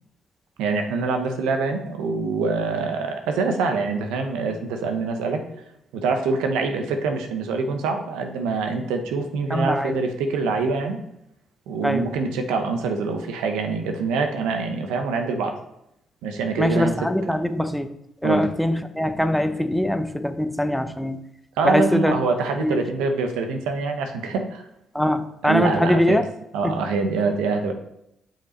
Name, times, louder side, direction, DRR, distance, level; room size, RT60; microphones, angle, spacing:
voice 1, 0.6-5.4 5.9-11.0 11.7-15.5 16.2-16.9 17.2-17.3 18.2-18.5 21.6-24.6 25.4-26.2 26.5-27.7, right 4 dB, 85° right, 5 dB, 0.9 m, -25 dB
voice 2, 9.5-10.0 11.8-12.1 16.6-17.9 18.2-21.2 21.6-22.2 22.6-22.8 24.9-26.2 26.6-26.7, left 1 dB, ahead, 9 dB, 0.8 m, -22 dB
7.5 x 6.1 x 4.3 m, 0.80 s
supercardioid pair, 60°, 0 cm